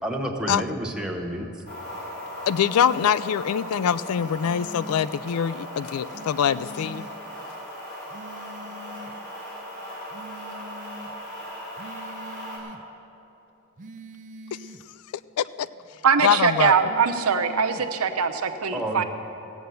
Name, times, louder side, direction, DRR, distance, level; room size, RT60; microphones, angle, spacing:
voice 1, 0.0-1.5 18.7-19.0, right 1 dB, 5° right, 0 dB, 1.0 m, -29 dB
sound 1, 1.7-12.6, equal, 50° left, 3.6 m, -38 dB
voice 2, 2.5-7.1 15.4-15.7 16.2-16.7, left 8 dB, 90° left, 17 dB, 0.3 m, -24 dB
sound 2, 2.5-3.1 4.1-5.1 6.1-7.1 8.1-9.1 10.1-11.1 11.8-12.8 13.8-14.8 16.8-17.9, right 1 dB, 35° right, 0.5 m, -43 dB
voice 3, 16.0-19.0, right 6 dB, 85° right, 7 dB, 0.8 m, -22 dB
16.5 x 7.8 x 6.9 m, 2.8 s
head